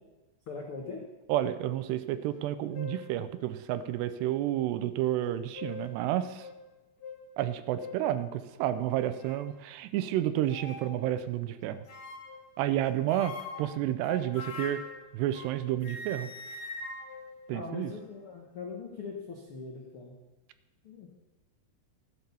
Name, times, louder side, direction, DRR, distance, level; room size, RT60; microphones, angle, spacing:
voice 1, 0.5-1.0 17.5-20.1 20.8-21.1, left 4 dB, 90° left, 0 dB, 1.2 m, -41 dB
voice 2, 1.3-6.5 7.4-11.8 12.6-14.8 15.1-16.3 17.5-17.9, right 12 dB, 80° right, 13 dB, 2.7 m, -30 dB
sound 1, 2.3-2.4 2.7-3.1 3.9-4.0 5.2-6.0 6.4-6.6 7.0-7.2 7.8-8.1 8.7-9.5 10.5-10.9 11.9-12.5 13.1-15.6 15.8-18.2, left 3 dB, 50° left, 2.6 m, -43 dB
14.5 x 10.5 x 7.0 m, 1.1 s
omnidirectional pair, 5.0 m